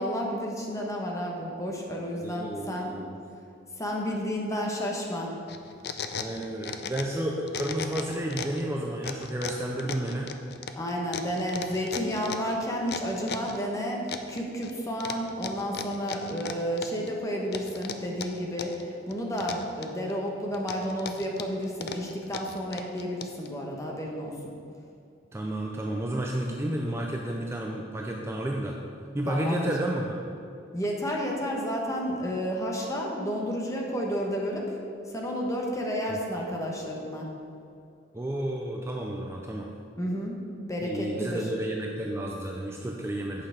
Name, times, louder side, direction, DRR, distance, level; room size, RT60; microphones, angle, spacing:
voice 1, 0.0-2.9 3.8-5.3 10.8-24.5 29.3-29.7 30.7-34.8 35.1-37.3 40.0-40.4 40.7-41.5, equal, 15° left, -1 dB, 1.1 m, -31 dB
voice 2, 2.2-3.2 6.2-10.3 25.3-28.7 29.1-30.2 36.1-36.2 38.1-39.7 40.8-43.5, right 1 dB, 15° right, 0 dB, 0.5 m, -31 dB
sound 1, 5.5-7.2 7.5-8.6 9.0-13.6 14.1-14.7 15.0-17.1 17.5-18.8 19.1-20.1 20.5-23.5, left 6 dB, 60° left, 0.5 m, -36 dB
8.4 x 5.8 x 5.1 m, 2.5 s
head